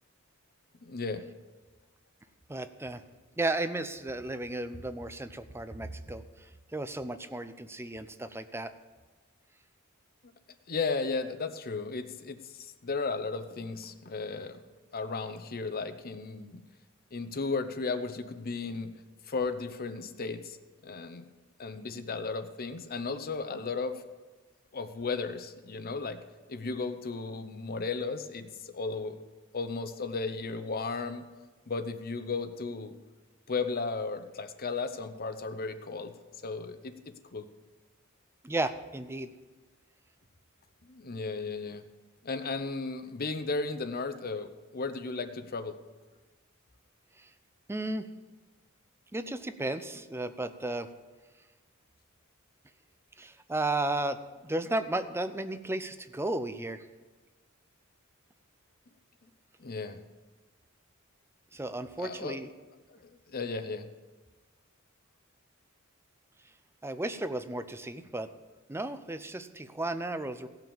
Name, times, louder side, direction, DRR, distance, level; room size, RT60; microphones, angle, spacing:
voice 1, 0.8-1.2 10.7-14.6 14.9-16.6 17.1-18.9 19.3-20.6 20.8-21.3 21.6-24.0 24.7-26.2 26.5-29.2 29.5-31.3 31.7-32.9 33.5-36.1 36.4-36.9 37.3-37.5 40.8-41.8 42.2-45.8 59.6-60.0 62.0-62.4 62.9-63.8, left 4 dB, 45° left, 10 dB, 0.8 m, -35 dB
voice 2, 2.5-3.0 3.4-6.2 6.7-8.7 38.4-39.3 47.7-48.1 49.1-50.9 53.2-56.9 61.5-62.5 66.8-68.3 68.7-70.5, right 2 dB, 10° right, 11 dB, 0.5 m, -34 dB
16.5 x 5.9 x 7.1 m, 1.3 s
head